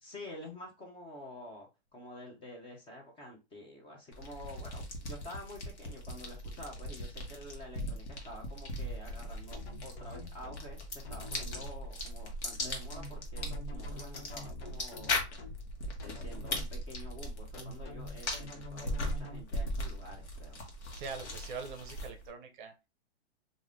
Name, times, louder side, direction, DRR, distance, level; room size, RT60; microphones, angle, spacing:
voice 1, 0.0-15.1 15.8-20.6, left 1 dB, 15° left, 1 dB, 0.6 m, -49 dB
sound 1, 4.1-22.3, left 1 dB, 80° left, 1.2 m, -39 dB
sound 2, 9.5-10.6 11.0-11.7 12.6-15.6 16.0-16.7 17.5-19.4, left 2 dB, 60° left, 0.8 m, -46 dB
voice 2, 20.9-22.7, right 5 dB, 50° right, 6 dB, 0.6 m, -43 dB
3.1 x 2.5 x 2.5 m, 0.27 s
hypercardioid pair, 140°, 33 cm